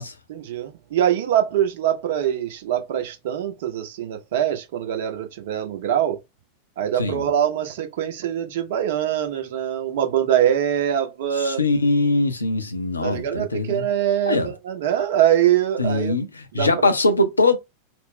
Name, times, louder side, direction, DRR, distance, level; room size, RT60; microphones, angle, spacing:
voice 1, 0.3-6.2 6.8-11.6 13.0-16.1 16.5-16.7, right 10 dB, 55° right, 0.7 m, -23 dB
voice 2, 11.3-13.9 14.3-14.5 15.8-17.6, left 2 dB, 80° left, 0.5 m, -22 dB
2.4 x 2.0 x 3.6 m
figure-of-eight pair, 90°, 0 cm